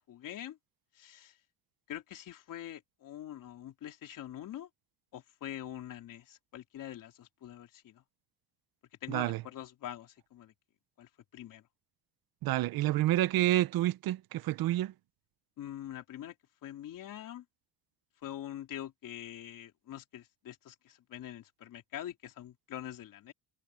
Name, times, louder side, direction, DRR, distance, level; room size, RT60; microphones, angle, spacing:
voice 1, 0.1-0.6 1.0-1.3 1.9-4.7 5.1-8.0 9.0-10.5 11.0-11.6 15.6-16.3 16.6-17.4 18.2-23.3, left 11 dB, 55° left, 3.5 m, -44 dB
voice 2, 9.1-9.4 12.4-14.9, right 14 dB, 60° right, 0.9 m, -28 dB
cardioid pair, 150°, 39 cm